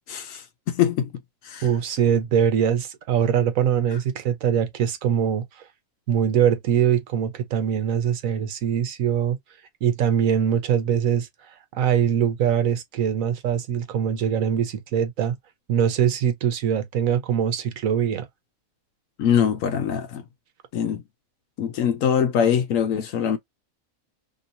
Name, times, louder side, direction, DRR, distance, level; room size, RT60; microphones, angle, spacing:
voice 1, 0.1-1.1 1.4-1.7 19.2-20.2 20.7-21.0 21.6-23.4, left 8 dB, 75° left, 1.0 m, -23 dB
voice 2, 1.6-5.4 6.1-9.4 9.8-15.4 15.7-18.3, right 8 dB, 70° right, 1.2 m, -22 dB
3.0 x 2.8 x 2.5 m
omnidirectional pair, 1.5 m